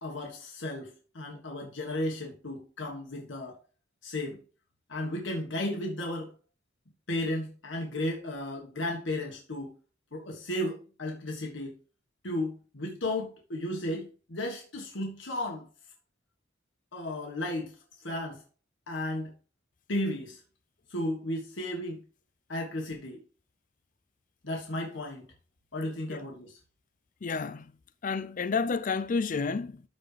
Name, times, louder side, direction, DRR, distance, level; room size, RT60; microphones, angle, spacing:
voice 1, 0.0-3.6 4.0-4.4 4.9-6.3 7.1-9.8 10.1-11.8 12.2-15.7 16.9-18.4 18.9-19.3 19.9-20.4 20.9-22.0 22.5-23.2 24.4-25.2 25.7-26.6, left 1 dB, 75° left, 1.5 m, -34 dB
voice 2, 27.2-27.7 28.0-29.8, left 5 dB, 45° left, 0.5 m, -30 dB
13.0 x 4.3 x 3.3 m
head